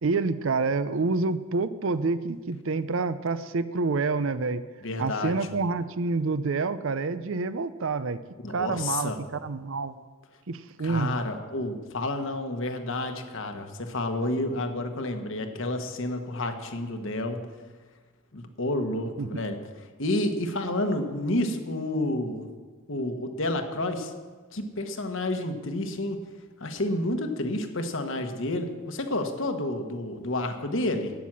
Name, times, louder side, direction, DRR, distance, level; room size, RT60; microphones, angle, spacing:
voice 1, 0.0-4.6 5.0-8.2 8.5-9.9 10.5-11.2 19.2-19.5, right 3 dB, 60° right, 14 dB, 0.6 m, -28 dB
voice 2, 4.8-5.3 8.4-9.2 10.8-17.5 18.3-19.6 20.0-22.5 22.9-24.1 24.5-26.2 26.6-31.1, left 1 dB, 60° left, 6 dB, 1.4 m, -30 dB
12.5 x 9.3 x 7.5 m, 1.4 s
head